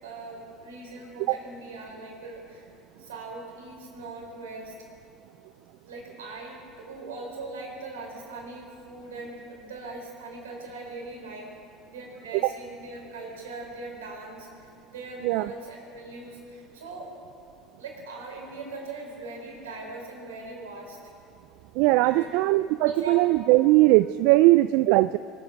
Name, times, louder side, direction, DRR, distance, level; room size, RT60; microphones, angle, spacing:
voice 1, 0.0-2.7 3.0-4.7 5.9-6.6 6.8-11.5 11.9-17.1 17.8-21.0 22.0-22.3 22.8-23.2, right 3 dB, 85° right, -1 dB, 4.5 m, -40 dB
voice 2, 21.8-25.2, right 19 dB, 70° right, 14 dB, 0.3 m, -20 dB
24.0 x 9.4 x 6.0 m, 2.5 s
hypercardioid pair, 80°, 0 cm